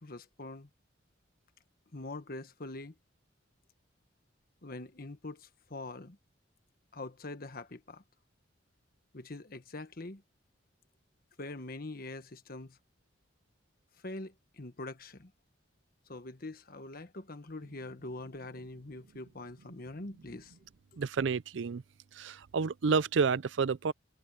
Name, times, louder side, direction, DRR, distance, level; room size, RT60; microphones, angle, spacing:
voice 1, 0.0-0.7 1.9-2.9 4.6-6.2 6.9-8.0 9.1-10.2 11.4-12.8 14.0-15.3 16.1-20.5, left 2 dB, 50° left, 1.3 m, -44 dB
voice 2, 21.0-21.8 22.2-23.9, right 5 dB, 70° right, 0.5 m, -29 dB
head